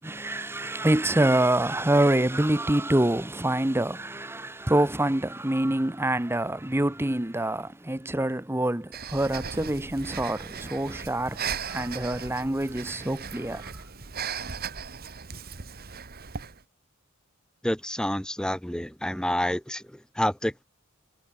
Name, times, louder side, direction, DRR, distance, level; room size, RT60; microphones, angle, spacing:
voice 1, 0.0-13.7, right 1 dB, 10° right, 0.9 m, -26 dB
Breathing, 8.9-16.6, right 6 dB, 50° right, 1.6 m, -37 dB
voice 2, 17.6-20.6, left 1 dB, 5° left, 1.3 m, -28 dB
head